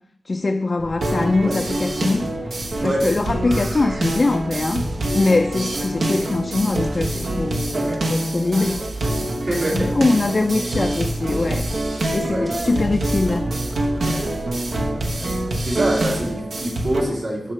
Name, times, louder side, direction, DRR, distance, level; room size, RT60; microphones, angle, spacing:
voice 1, 0.3-2.5 2.8-4.9 5.1-8.9 9.7-11.7 12.1-13.5, left 3 dB, 40° left, 6 dB, 0.3 m, -22 dB
sound 1, 0.8-7.6, equal, 45° right, 1.6 m, -38 dB
sound 2, 1.0-17.0, right 1 dB, 85° right, 1.1 m, -25 dB
sound 3, 2.5-16.4, right 1 dB, 20° right, 0.5 m, -37 dB
voice 2, 9.5-9.9 12.3-12.7 14.0-14.3 14.9-15.3 15.6-17.5, right 1 dB, 70° right, -4 dB, 2.4 m, -26 dB
12.0 x 4.7 x 3.2 m, 0.80 s
wide cardioid pair, 110°, 0 cm